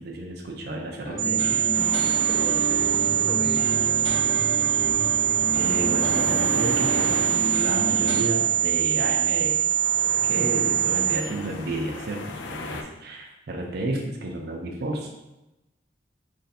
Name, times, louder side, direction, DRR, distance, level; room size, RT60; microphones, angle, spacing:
voice 1, 0.0-1.6 5.6-9.6 10.3-15.1, right 2 dB, 60° right, 1 dB, 0.5 m, -31 dB
sound 1, 1.0-8.2, right 1 dB, 35° left, 0.8 m, -31 dB
sound 2, 1.2-11.2, right 9 dB, 90° right, 0.8 m, -23 dB
sound 3, 1.7-12.8, left 3 dB, 85° left, 0.4 m, -39 dB
voice 2, 1.7-3.8 10.4-10.7, equal, ahead, 0 dB, 0.4 m, -37 dB
3.1 x 2.6 x 4.1 m, 0.98 s
head